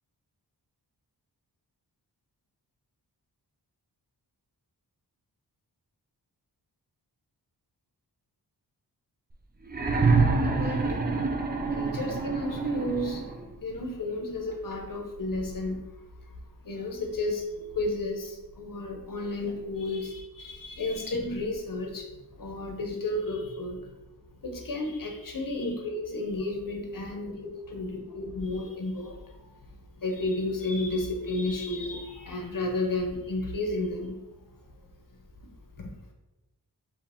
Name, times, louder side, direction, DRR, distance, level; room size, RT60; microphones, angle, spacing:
sound 1, 9.7-13.5 14.7-14.8, right 4 dB, 25° right, 0.4 m, -26 dB
voice 1, 10.3-11.0 11.5-13.2 13.6-15.8 16.6-22.1 22.4-23.8 24.4-29.2 30.0-34.1 35.8-35.9, left 2 dB, 50° left, 2 dB, 0.7 m, -32 dB
4.7 x 2.7 x 3.5 m, 1.0 s
wide cardioid pair, 110°, 41 cm